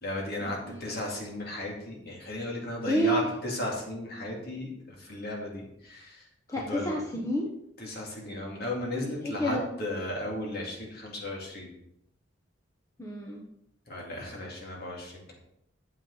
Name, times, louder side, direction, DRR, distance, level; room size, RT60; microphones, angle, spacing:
voice 1, 0.0-6.3 6.7-6.9 7.8-11.7 13.9-15.3, left 1 dB, 50° left, -2 dB, 2.4 m, -35 dB
voice 2, 0.6-1.0 2.9-3.3 6.5-7.5 9.2-9.7 13.0-13.4, right 1 dB, 15° left, -2 dB, 0.9 m, -29 dB
8.9 x 7.3 x 4.0 m, 0.78 s
head